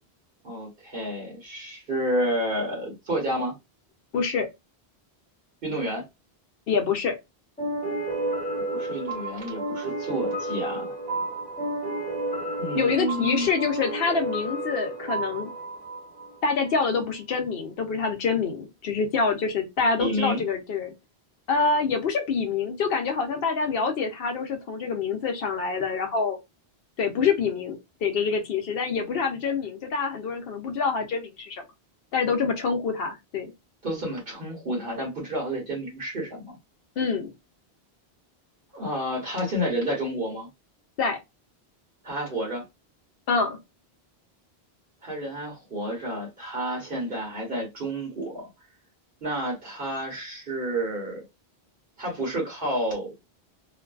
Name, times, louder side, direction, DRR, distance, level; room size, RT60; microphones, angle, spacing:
voice 1, 0.4-3.5 5.6-6.0 8.6-11.0 12.6-13.5 20.0-20.4 33.8-36.6 38.7-40.5 42.0-42.6 45.0-48.5 49.2-51.2 52.0-53.1, right 1 dB, 60° right, 1.1 m, -30 dB
voice 2, 4.1-4.5 6.7-7.1 12.7-15.5 16.4-20.9 21.5-26.4 27.0-31.6 32.1-33.5 37.0-37.3 41.0-41.2 43.3-43.6, left 5 dB, 70° left, 0.7 m, -26 dB
sound 1, 7.6-16.8, right 2 dB, 10° left, 1.2 m, -31 dB
2.5 x 2.3 x 2.3 m
omnidirectional pair, 1.1 m